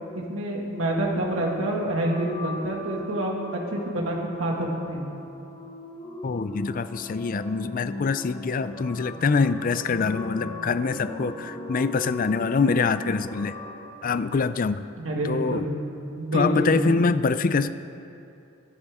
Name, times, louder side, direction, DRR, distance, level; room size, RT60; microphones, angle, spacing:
voice 1, 0.3-5.0 15.0-15.7 16.2-17.0, right 1 dB, 90° right, -1 dB, 2.1 m, -27 dB
sound 1, 1.4-13.9, left 1 dB, 25° left, 1.8 m, -39 dB
voice 2, 6.2-13.5 14.0-14.9 15.2-15.7 16.3-17.7, left 4 dB, 45° left, 13 dB, 0.4 m, -24 dB
23.0 x 11.0 x 3.7 m, 2.7 s
head